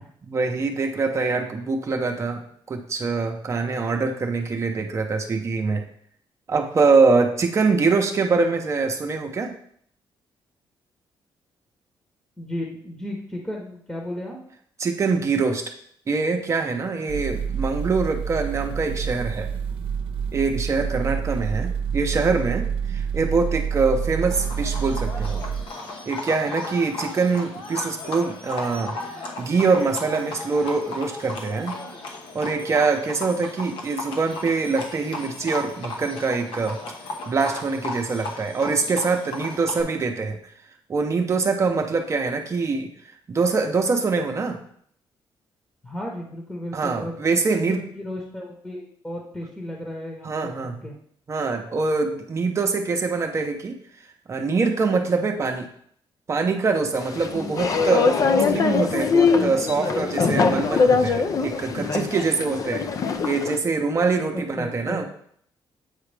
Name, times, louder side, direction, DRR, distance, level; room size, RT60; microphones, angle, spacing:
voice 1, 0.2-2.4 2.7-5.8 6.5-9.5 14.8-15.7 16.1-19.5 20.3-25.4 26.1-29.0 29.4-31.8 32.3-36.8 37.3-40.4 40.9-42.9 43.3-44.6 46.7-47.8 50.2-50.8 51.3-53.8 54.3-55.7 56.3-58.2 58.5-62.9 63.2-65.1, right 4 dB, 35° right, 4 dB, 0.7 m, -24 dB
voice 2, 12.4-14.4 45.8-47.2 47.5-51.0 64.3-65.1, left 1 dB, 10° left, -1 dB, 1.0 m, -34 dB
sound 1, 17.1-25.7, right 7 dB, 75° right, 0.7 m, -28 dB
Livestock farm animals working animals, 24.3-39.8, left 2 dB, 75° left, 1.1 m, -36 dB
sound 2, 57.0-63.6, left 5 dB, 40° left, 0.5 m, -22 dB
8.1 x 4.8 x 3.4 m, 0.64 s
cardioid pair, 140°, 9 cm